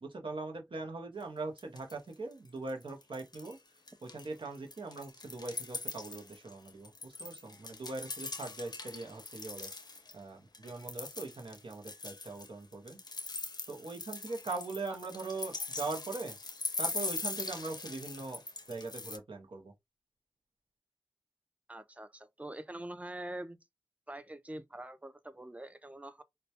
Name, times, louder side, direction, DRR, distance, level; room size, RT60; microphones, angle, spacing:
voice 1, 0.0-3.6 4.0-9.7 10.1-13.0 13.7-16.3 16.8-18.4 18.7-19.7, right 3 dB, 80° right, 0.6 m, -41 dB
sound 1, 1.2-1.3 1.6-2.1 2.5-3.6 3.9-10.1 10.5-19.2, left 3 dB, 50° left, 0.5 m, -41 dB
voice 2, 21.7-23.6 24.1-26.2, right 1 dB, 15° right, 0.4 m, -44 dB
2.1 x 2.1 x 2.7 m
wide cardioid pair, 50°, 9 cm